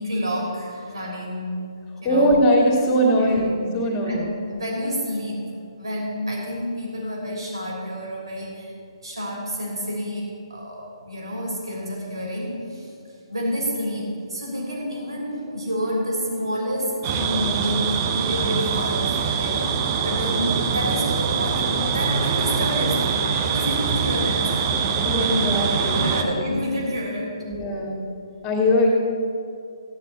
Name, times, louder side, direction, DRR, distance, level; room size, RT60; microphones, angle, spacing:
voice 1, 0.0-1.6 2.0-2.3 3.1-3.4 3.8-5.5 5.8-19.7 20.0-24.9 25.2-25.5 25.9-27.4, equal, 75° right, -3 dB, 3.2 m, -29 dB
voice 2, 2.0-4.3 25.0-26.4 27.5-28.0 28.4-28.9, equal, 20° left, -1 dB, 2.4 m, -21 dB
sound 1, 17.0-26.2, right 6 dB, 30° right, 0.8 m, -23 dB
16.0 x 9.6 x 4.0 m, 2.5 s
figure-of-eight pair, 135°, 3 cm